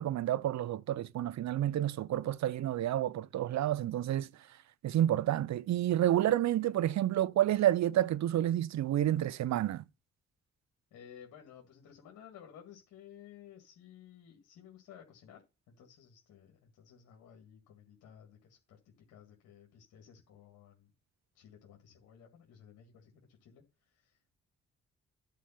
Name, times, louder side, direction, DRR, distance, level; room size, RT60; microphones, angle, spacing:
voice 1, 0.0-4.3 4.8-9.8, right 12 dB, 60° right, 0.7 m, -29 dB
voice 2, 10.9-18.8 19.1-20.9 21.3-24.3, left 9 dB, 75° left, 2.0 m, -56 dB
10.5 x 4.8 x 5.7 m
hypercardioid pair, 40°, 31 cm